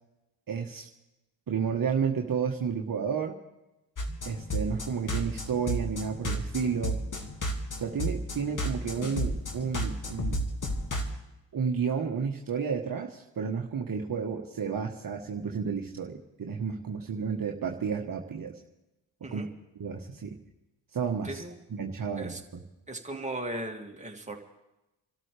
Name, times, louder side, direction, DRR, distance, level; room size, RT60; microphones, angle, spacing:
voice 1, 0.5-0.9 1.5-3.3 4.2-7.0 7.7-10.4 11.5-18.6 19.2-19.4 19.8-20.4 20.9-21.4 21.7-22.6, right 6 dB, 45° right, 1 dB, 1.5 m, -31 dB
sound 1, 4.0-11.1, equal, 40° left, 2.3 m, -33 dB
voice 2, 22.9-24.4, right 2 dB, 15° right, 1 dB, 2.6 m, -37 dB
27.0 x 13.0 x 3.5 m, 0.96 s
hypercardioid pair, 45°, 47 cm